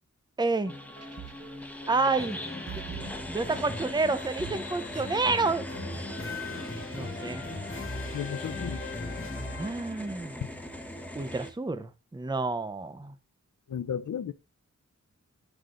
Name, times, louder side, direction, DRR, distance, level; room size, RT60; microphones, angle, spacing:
voice 1, 0.4-0.7 1.9-2.4 3.3-5.7 6.9-7.4 9.6-10.3 11.1-13.1, right 3 dB, 15° right, 0.7 m, -29 dB
sound 1, 0.6-11.5, left 1 dB, 5° left, 1.2 m, -40 dB
sound 2, 0.7-6.7, right 8 dB, 55° right, 1.3 m, -47 dB
sound 3, 2.2-10.0, left 2 dB, 45° left, 1.7 m, -39 dB
voice 2, 8.1-8.9 13.7-14.3, left 8 dB, 90° left, 0.6 m, -33 dB
10.5 x 7.9 x 2.5 m
wide cardioid pair, 105°, 29 cm